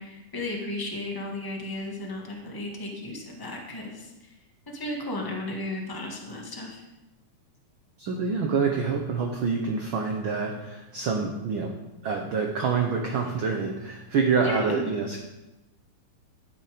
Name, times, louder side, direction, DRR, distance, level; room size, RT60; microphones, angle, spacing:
voice 1, 0.0-4.3 4.7-6.8 14.4-14.9, left 1 dB, 15° left, -1 dB, 0.8 m, -34 dB
voice 2, 8.0-11.7 12.0-15.2, right 5 dB, 65° right, 2 dB, 1.2 m, -27 dB
12.0 x 7.3 x 5.1 m, 1.0 s
omnidirectional pair, 3.4 m